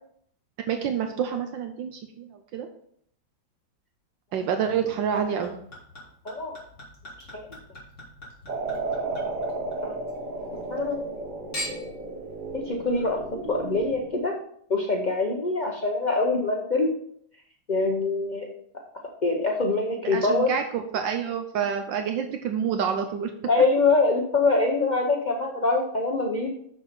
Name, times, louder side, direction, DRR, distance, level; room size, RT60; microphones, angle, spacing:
voice 1, 0.7-2.7 4.3-5.6 20.1-23.3, right 7 dB, 75° right, 6 dB, 1.3 m, -28 dB
Chink clink / Liquid, 4.6-10.2 10.5-11.2 11.5-12.1 12.8-12.9, equal, 35° left, 3.1 m, -42 dB
voice 2, 6.2-6.6 7.3-7.4 9.8-9.9 10.7-11.0 12.5-13.2 13.5-14.4 14.7-16.9 17.7-18.5 19.2-20.5 23.5-26.5, left 3 dB, 75° left, 0 dB, 0.4 m, -24 dB
sound 1, 8.5-14.2, right 3 dB, 45° right, 0.6 m, -33 dB
6.8 x 6.5 x 4.2 m, 0.66 s
omnidirectional pair, 2.2 m